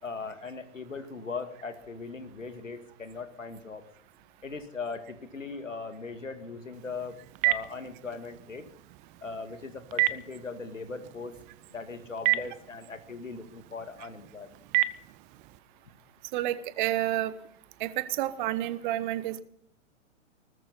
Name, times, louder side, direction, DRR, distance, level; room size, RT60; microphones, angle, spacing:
voice 1, 0.0-3.8 4.4-7.1 7.4-8.6 9.2-11.4 11.7-14.5, left 4 dB, 80° left, 8 dB, 2.3 m, -39 dB
Telephone, 6.7-15.6, right 15 dB, 20° right, 0.5 m, -33 dB
voice 2, 16.3-17.3 17.8-19.4, right 14 dB, 40° right, 15 dB, 1.2 m, -29 dB
19.5 x 13.5 x 4.3 m, 0.69 s
figure-of-eight pair, 105°, 38 cm